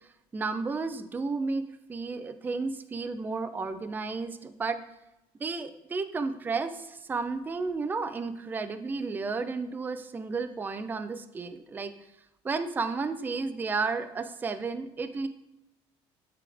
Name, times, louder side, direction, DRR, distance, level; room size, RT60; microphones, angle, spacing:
voice 1, 0.3-1.6 1.9-4.8 5.4-11.9 12.4-15.3, right 4 dB, 15° right, 9 dB, 0.3 m, -32 dB
8.3 x 3.5 x 3.4 m, 0.88 s
cardioid pair, 130°, 12 cm